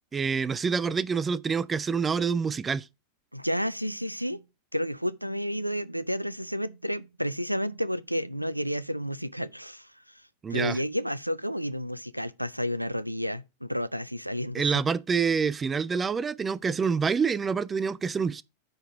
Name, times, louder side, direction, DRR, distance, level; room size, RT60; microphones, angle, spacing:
voice 1, 0.1-2.9 10.4-10.8 14.5-18.4, right 5 dB, 20° right, 0.4 m, -27 dB
voice 2, 3.3-4.5 4.7-10.2 10.5-14.7, equal, 90° right, 0.4 m, -31 dB
8.8 x 3.9 x 6.0 m
figure-of-eight pair, 90°, 0 cm